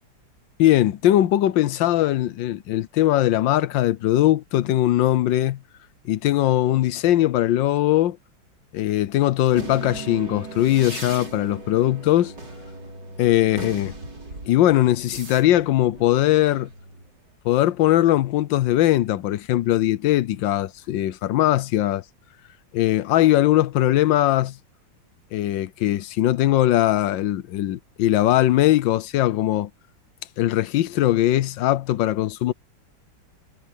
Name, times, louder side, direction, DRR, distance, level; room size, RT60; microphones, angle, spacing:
voice 1, 0.6-5.6 6.0-8.2 8.7-12.3 13.2-13.9 14.5-16.7 17.4-22.0 22.7-24.6 25.3-29.7 30.4-32.5, left 14 dB, 75° left, 1.4 m, -20 dB
sound 1, 9.5-17.1, right 3 dB, 60° right, 6.0 m, -38 dB
omnidirectional pair, 2.1 m